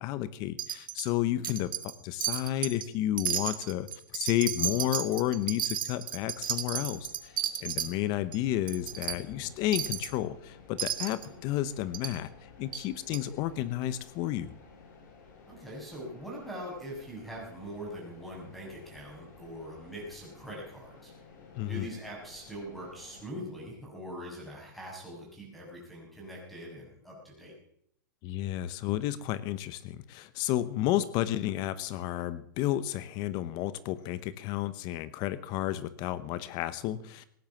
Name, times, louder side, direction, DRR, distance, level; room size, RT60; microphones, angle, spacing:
voice 1, 0.0-14.5 21.5-21.9 28.2-37.3, left 13 dB, 40° left, 16 dB, 0.9 m, -32 dB
Wind chime, 0.6-1.1 1.4-2.0 2.2-2.9 3.2-7.9 8.3-8.4 8.7-9.2 9.7-10.1 10.8-11.3 11.9-12.2 12.7-12.8 13.1-13.2, right 10 dB, 85° right, 1.9 m, -33 dB
sound 1, 6.1-23.2, left 5 dB, 60° left, 6.4 m, -53 dB
voice 2, 15.5-21.1 21.7-27.5, equal, ahead, -2 dB, 6.9 m, -42 dB
17.5 x 10.5 x 7.2 m, 0.68 s
hypercardioid pair, 140°, 11 cm